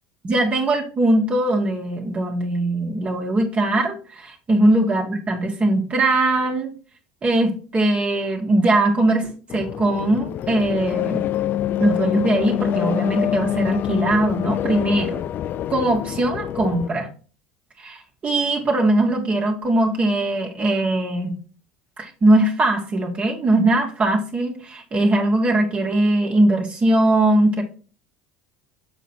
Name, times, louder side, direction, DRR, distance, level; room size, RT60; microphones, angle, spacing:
voice 1, 0.2-6.7 7.2-11.2 11.8-15.2 15.7-17.1 17.8-21.4 22.0-27.6, right 1 dB, 30° right, 1 dB, 1.6 m, -20 dB
sound 1, 9.5-16.9, left 11 dB, 50° left, 0.3 m, -25 dB
7.2 x 4.1 x 4.3 m, 0.38 s
hypercardioid pair, 80°, 4 cm